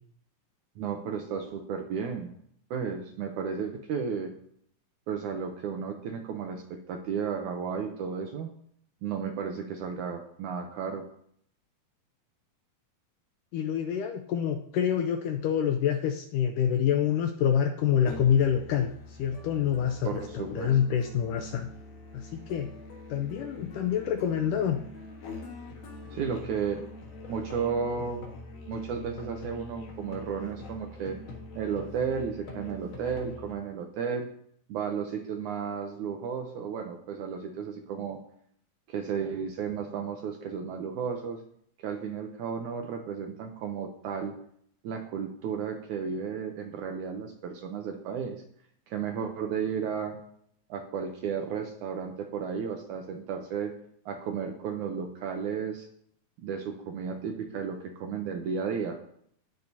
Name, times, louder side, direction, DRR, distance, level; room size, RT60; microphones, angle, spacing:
voice 1, 0.8-2.4 2.7-4.3 5.1-8.5 9.0-11.1 20.0-20.8 26.1-26.8 27.3-28.3 28.7-31.2 31.5-34.3 34.7-38.2 38.9-41.4 41.8-44.4 44.8-48.4 48.9-50.2 50.7-53.7 54.1-55.9 56.4-59.0, right 6 dB, 75° right, 3 dB, 1.9 m, -33 dB
voice 2, 13.5-18.9 19.2-21.7 22.1-22.7 23.1-24.8, left 9 dB, 80° left, 5 dB, 2.0 m, -27 dB
Musical instrument, 18.1-33.6, left 2 dB, 55° left, 2.4 m, -44 dB
18.5 x 6.6 x 2.8 m, 0.65 s
omnidirectional pair, 4.3 m